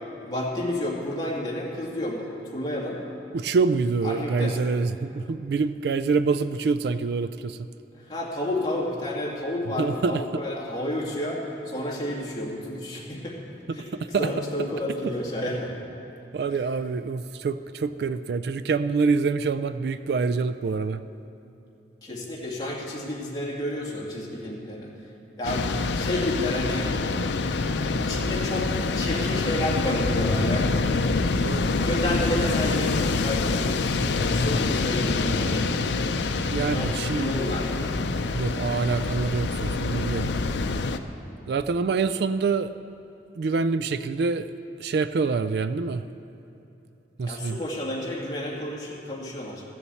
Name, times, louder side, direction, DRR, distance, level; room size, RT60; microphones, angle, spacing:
voice 1, 0.2-3.0 4.0-4.6 8.0-13.4 13.7-13.9 14.2-15.7 16.5-16.7 22.0-24.9 25.4-25.7 26.0-26.9 28.0-28.7 28.9-30.7 31.8-33.9 34.3-35.9 36.7-37.8 47.3-49.6, left 1 dB, 20° left, -4 dB, 2.2 m, -30 dB
voice 2, 3.3-7.6 9.8-10.4 13.7-13.8 14.1-14.3 16.3-21.0 31.3-31.7 36.5-37.3 38.3-40.3 41.5-42.7 43.4-44.5 44.8-46.0 47.2-47.6, right 4 dB, 60° right, 13 dB, 0.3 m, -26 dB
sound 1, 25.4-41.0, left 3 dB, 80° left, 0.5 m, -26 dB
14.0 x 7.0 x 8.3 m, 2.9 s
head